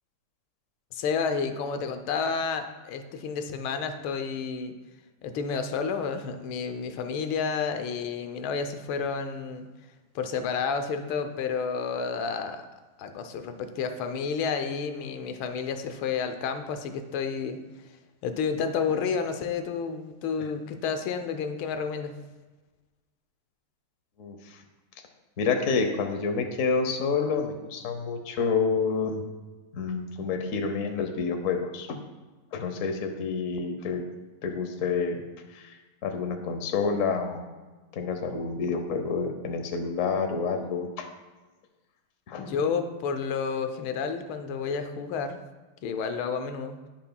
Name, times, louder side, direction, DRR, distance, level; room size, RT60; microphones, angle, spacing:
voice 1, 0.9-4.7 5.2-9.7 10.1-12.7 13.0-18.0 18.2-22.1 42.4-45.4 45.8-46.8, left 5 dB, 75° left, 7 dB, 1.5 m, -30 dB
voice 2, 24.2-24.6 25.4-29.2 29.7-32.0 32.5-34.0 34.4-35.2 35.5-35.7 36.0-37.4 37.9-41.1 42.3-42.4, left 5 dB, 55° left, 5 dB, 1.0 m, -28 dB
16.0 x 5.8 x 2.3 m, 1.3 s
omnidirectional pair, 2.3 m